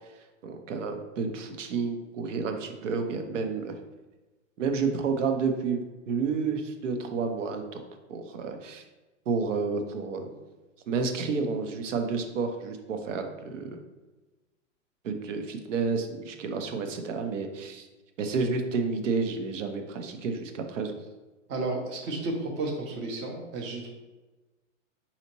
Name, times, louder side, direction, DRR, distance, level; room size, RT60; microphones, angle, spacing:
voice 1, 0.4-3.8 4.6-7.8 8.1-8.8 9.3-10.3 10.9-13.8 15.0-17.9 18.2-20.9, right 4 dB, 70° right, 6 dB, 0.7 m, -30 dB
voice 2, 21.5-23.9, right 2 dB, 30° right, 0 dB, 0.7 m, -32 dB
4.9 x 2.8 x 2.9 m, 1.2 s
hypercardioid pair, 105°, 38 cm